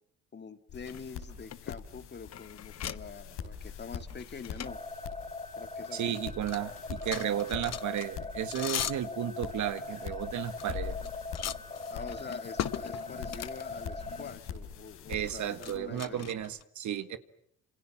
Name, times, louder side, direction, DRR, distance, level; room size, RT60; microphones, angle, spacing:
voice 1, 0.3-4.8 5.6-6.2 11.9-16.3, left 5 dB, 35° left, 10 dB, 2.1 m, -45 dB
sound 1, 0.7-15.8, left 7 dB, 85° left, 5.3 m, -45 dB
sound 2, 0.9-5.9 6.1-16.6, left 10 dB, 60° left, 1.0 m, -41 dB
sound 3, 4.6-14.2, left 2 dB, 20° left, 4.4 m, -41 dB
voice 2, 5.9-11.0 15.1-17.2, right 10 dB, 70° right, 12 dB, 1.7 m, -33 dB
28.5 x 27.0 x 7.4 m, 0.70 s
cardioid pair, 90°, 30 cm